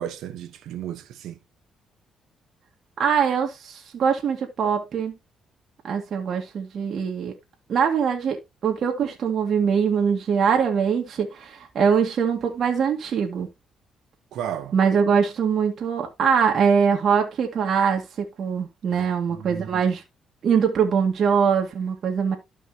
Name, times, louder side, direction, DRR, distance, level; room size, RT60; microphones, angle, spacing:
voice 1, 0.0-1.4 14.3-14.7 18.9-19.9, right 10 dB, 80° right, 1.3 m, -34 dB
voice 2, 3.0-5.1 5.8-7.3 7.7-8.4 8.6-13.5 14.7-20.0 20.4-22.4, right 6 dB, 60° right, 2.1 m, -22 dB
13.0 x 5.3 x 2.9 m
cardioid pair, 90°, 0 cm